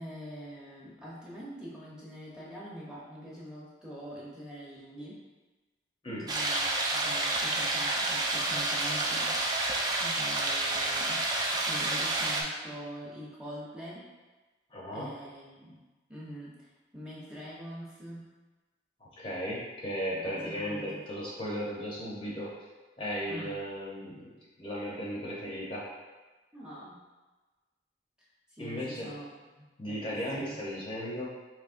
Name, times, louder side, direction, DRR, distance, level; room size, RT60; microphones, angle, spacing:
voice 1, 0.0-5.2 6.1-11.2 11.5-14.0 14.9-15.8 16.1-16.5 16.9-18.3 20.2-21.0 23.3-23.6 26.5-27.0 28.5-29.3 29.6-30.6, equal, 5° right, -7 dB, 0.8 m, -44 dB
sound 1, 6.3-12.4, right 2 dB, 20° right, 0.3 m, -29 dB
voice 2, 14.7-15.2 19.0-22.5 23.0-25.9 28.6-29.1 29.8-31.3, equal, 30° left, -5 dB, 0.6 m, -36 dB
4.7 x 3.1 x 2.5 m, 1.2 s
head